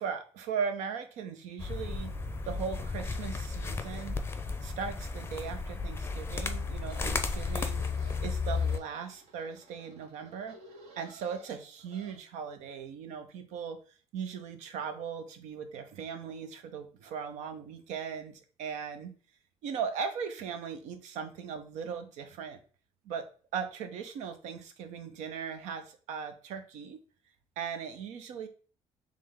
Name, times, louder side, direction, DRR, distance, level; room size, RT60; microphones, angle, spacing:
voice 1, 0.0-2.1 2.4-4.2 4.6-7.9 8.2-10.6 11.0-13.8 14.1-19.1 19.6-22.6 23.0-23.3 23.5-27.0 27.6-28.5, right 6 dB, 85° right, 8 dB, 0.6 m, -38 dB
sound 1, 1.6-8.8, left 4 dB, 20° left, 0.5 m, -34 dB
sound 2, 6.7-12.2, right 2 dB, 65° right, 1.1 m, -55 dB
3.5 x 3.1 x 3.7 m, 0.39 s
cardioid pair, 90°, 12 cm